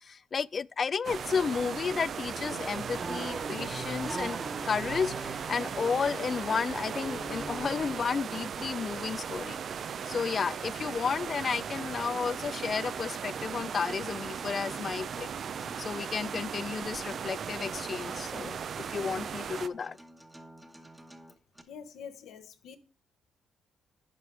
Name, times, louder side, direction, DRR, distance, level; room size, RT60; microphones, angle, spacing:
voice 1, 0.0-4.4 4.6-9.6 10.1-15.3 15.8-18.6 18.9-20.0, left 5 dB, 40° left, 0.3 m, -32 dB
sound 1, 1.0-19.7, right 7 dB, 55° right, 0.5 m, -37 dB
Race car auto racing / Accelerating revving vroom, 1.8-8.5, right 3 dB, 30° right, 1.4 m, -41 dB
Acoustic guitar, 13.6-21.6, right 1 dB, 10° right, 1.2 m, -52 dB
voice 2, 21.7-22.8, left 7 dB, 80° left, 1.1 m, -45 dB
10.5 x 5.1 x 4.6 m
cardioid pair, 90°, 0 cm